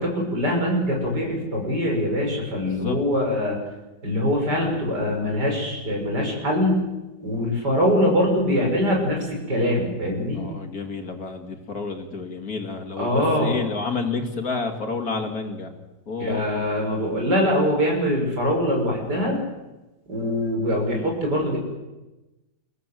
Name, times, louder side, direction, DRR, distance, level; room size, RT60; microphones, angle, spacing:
voice 1, 0.0-3.6 4.0-6.8 7.2-10.4 13.0-13.6 16.2-19.4 20.1-21.6, equal, 80° right, 1 dB, 6.7 m, -23 dB
voice 2, 2.6-3.0 10.3-15.7 16.1-16.4, left 4 dB, 60° left, 4 dB, 3.2 m, -30 dB
29.0 x 16.5 x 7.9 m, 1.0 s
omnidirectional pair, 1.8 m